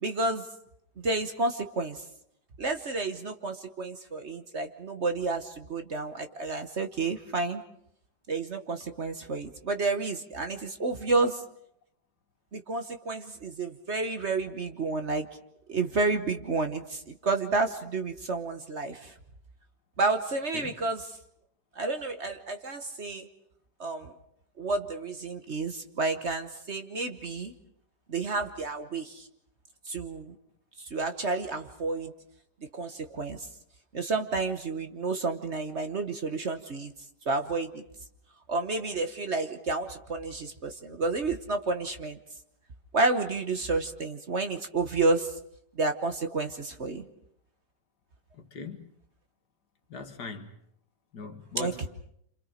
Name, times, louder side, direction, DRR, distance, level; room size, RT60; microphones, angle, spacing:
voice 1, 0.0-0.5 1.0-2.0 2.6-7.6 8.3-11.4 12.5-15.3 15.7-19.1 20.0-21.2 21.7-23.3 23.8-24.1 24.6-27.5 28.1-29.3 29.9-30.3 30.8-32.1 32.7-33.5 33.9-36.9 37.2-37.8 38.5-42.2 42.9-45.4 45.7-47.1 51.6-51.9, right 3 dB, 45° right, 1.4 m, -30 dB
voice 2, 48.4-48.8 49.9-50.5 51.1-51.9, left 4 dB, 70° left, 2.2 m, -40 dB
29.0 x 27.0 x 5.1 m
omnidirectional pair, 1.9 m